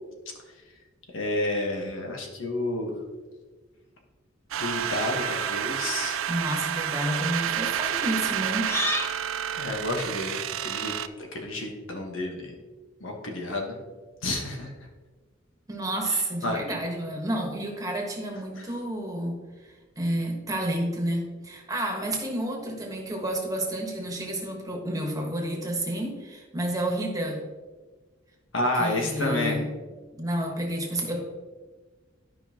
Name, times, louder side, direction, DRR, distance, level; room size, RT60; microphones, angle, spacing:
voice 1, 1.1-2.9 4.6-6.2 9.6-10.9 11.3-12.5 13.0-13.7 14.2-14.7 16.1-16.6 28.5-29.6, left 2 dB, 80° left, 1 dB, 1.4 m, -30 dB
sound 1, 4.5-11.1, right 9 dB, 90° right, 0.4 m, -30 dB
sound 2, 4.7-5.6 6.5-6.8 8.6-9.2, left 1 dB, 15° left, 0.8 m, -32 dB
voice 2, 6.3-8.7 15.7-19.4 20.0-27.4 28.8-29.6 30.2-31.2, right 1 dB, 20° right, 0 dB, 1.3 m, -30 dB
12.0 x 5.3 x 2.9 m, 1.4 s
head